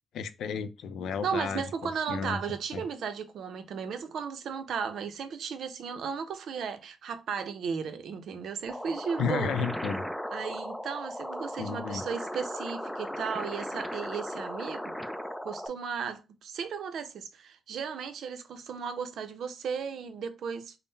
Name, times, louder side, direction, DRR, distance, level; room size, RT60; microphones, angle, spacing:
voice 1, 0.1-2.4 2.7-2.8 9.2-10.0 11.6-12.0, left 6 dB, 85° left, 0.4 m, -33 dB
voice 2, 1.2-9.6 10.3-14.9 15.4-20.8, right 6 dB, 75° right, 0.5 m, -35 dB
sound 1, 8.7-15.7, equal, 5° left, 0.3 m, -37 dB
3.6 x 2.0 x 3.9 m
cardioid pair, 120°, 0 cm